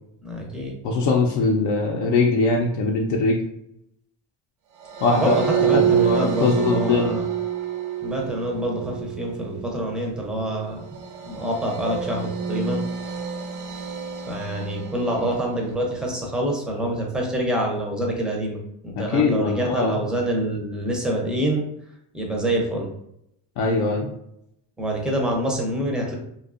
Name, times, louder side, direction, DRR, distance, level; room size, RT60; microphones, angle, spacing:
voice 1, 0.2-0.8 5.1-7.3 8.0-12.8 14.3-21.6 22.1-22.9 24.8-26.1, right 1 dB, ahead, 0 dB, 0.4 m, -26 dB
voice 2, 0.8-3.4 5.0-5.3 5.7-7.1 19.0-20.0 23.6-24.1, left 3 dB, 65° left, -1 dB, 0.5 m, -21 dB
sound 1, 4.8-16.1, right 8 dB, 90° right, 0.5 m, -28 dB
2.6 x 2.3 x 2.4 m, 0.76 s
cardioid pair, 115°, 46 cm